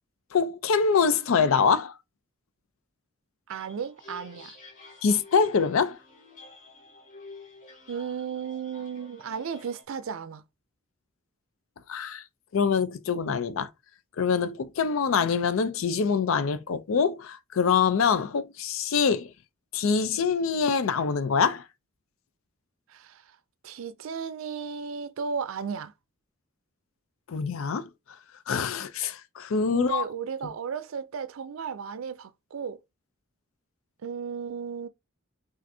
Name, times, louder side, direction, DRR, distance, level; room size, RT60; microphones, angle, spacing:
voice 1, 0.3-1.9 5.0-6.0 11.9-12.2 12.5-13.7 14.2-19.3 19.7-21.6 27.3-27.9 28.5-30.0, left 6 dB, 75° left, 0.4 m, -25 dB
sound 1, 3.5-9.8, left 3 dB, 40° left, 1.9 m, -50 dB
voice 2, 3.5-4.5 7.9-10.4 22.9-23.2 23.6-25.9 29.7-32.8 34.0-34.9, right 6 dB, 75° right, 0.4 m, -34 dB
5.9 x 2.5 x 2.6 m
head